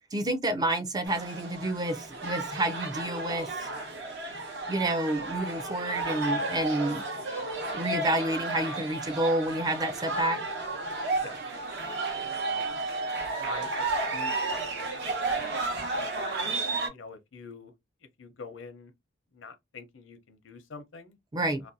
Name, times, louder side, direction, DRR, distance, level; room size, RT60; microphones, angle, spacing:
voice 1, 0.1-3.7 4.7-7.0 7.7-10.4 21.3-21.6, right 1 dB, 20° right, 0.4 m, -29 dB
sound 1, 1.0-16.9, right 3 dB, 65° right, 0.8 m, -32 dB
voice 2, 11.2-12.8 13.3-13.9 14.1-15.4 16.1-16.6 16.9-17.7 18.2-18.9 19.3-21.2 21.6-21.7, left 4 dB, 85° left, 0.6 m, -46 dB
2.5 x 2.1 x 2.6 m
head